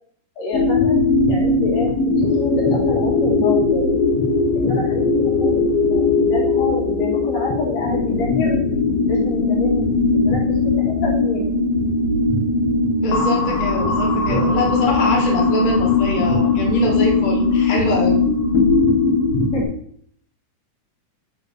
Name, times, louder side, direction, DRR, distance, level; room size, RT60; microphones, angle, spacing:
voice 1, 0.4-1.0 1.3-3.9 4.5-8.6 9.1-11.6 19.5-19.6, left 2 dB, 85° left, -5 dB, 4.6 m, -28 dB
sound 1, 0.5-19.6, left 3 dB, 60° left, 2.0 m, -19 dB
voice 2, 13.0-18.2, left 2 dB, 25° left, -2 dB, 1.2 m, -24 dB
10.0 x 4.5 x 4.1 m, 0.65 s
omnidirectional pair, 3.7 m